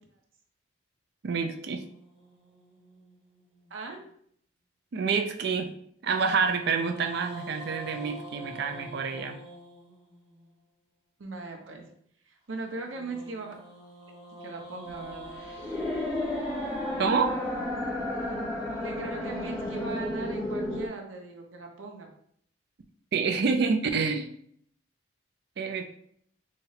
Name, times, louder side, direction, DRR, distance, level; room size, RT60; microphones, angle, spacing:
voice 1, 1.2-1.8 4.9-5.7 6.0-9.4 17.0-17.4 23.1-24.3 25.6-25.9, right 5 dB, 55° right, 6 dB, 0.4 m, -27 dB
sound 1, 1.7-4.1 6.3-10.5 12.6-18.8, right 1 dB, 30° right, 0.9 m, -47 dB
voice 2, 3.7-4.0 11.2-11.9 12.2-13.6 14.1-15.8 18.8-22.1, right 3 dB, 85° right, 2 dB, 0.8 m, -39 dB
sound 2, 14.9-20.9, left 1 dB, 20° left, 0.8 m, -32 dB
4.1 x 2.0 x 4.0 m, 0.65 s
head